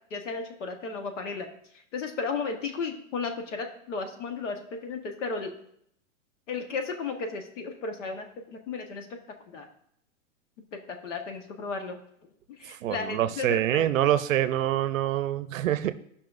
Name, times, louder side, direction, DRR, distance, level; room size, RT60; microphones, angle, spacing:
voice 1, 0.1-1.5 1.9-5.5 6.5-9.1 9.5-9.7 10.7-12.0 12.6-13.8, left 4 dB, 60° left, 5 dB, 1.4 m, -34 dB
voice 2, 12.7-16.0, right 12 dB, 70° right, 13 dB, 0.7 m, -26 dB
16.0 x 5.7 x 2.6 m, 0.70 s
supercardioid pair, 170°, 40 cm